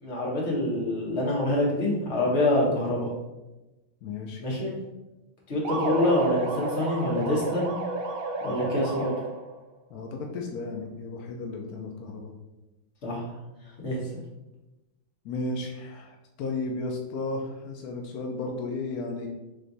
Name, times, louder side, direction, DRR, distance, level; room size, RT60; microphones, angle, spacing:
voice 1, 0.0-3.1 4.4-4.7 5.5-7.7 8.4-9.1 13.0-13.3 13.8-14.0, left 1 dB, 40° left, -4 dB, 1.3 m, -26 dB
voice 2, 4.0-4.4 9.9-12.3 15.2-19.3, left 3 dB, 85° left, 1 dB, 0.8 m, -34 dB
sound 1, 5.7-9.5, right 2 dB, 85° right, 1.5 m, -31 dB
3.7 x 3.3 x 4.0 m, 1.0 s
omnidirectional pair, 2.2 m